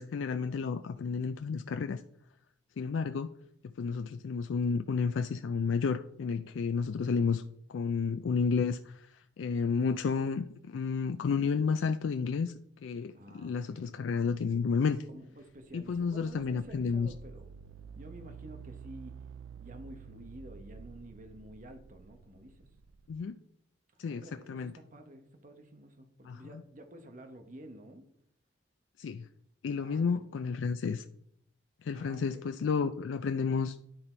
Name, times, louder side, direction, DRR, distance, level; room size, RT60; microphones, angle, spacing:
voice 1, 0.0-2.0 2.8-3.3 3.8-7.4 7.7-9.1 9.4-12.5 12.8-15.0 15.7-17.1 23.1-23.3 24.0-24.2 24.5-24.7 26.2-26.4 29.0-29.3 29.6-31.0 31.8-33.8, left 5 dB, 85° left, 9 dB, 0.4 m, -31 dB
voice 2, 13.1-13.9 15.1-17.5 18.0-19.2 19.6-22.7 24.1-28.1 29.8-30.1 31.9-32.5, right 1 dB, 45° right, 5 dB, 1.0 m, -50 dB
sound 1, 15.5-23.2, right 6 dB, 85° right, 0.3 m, -50 dB
10.5 x 4.1 x 4.4 m, 0.70 s
head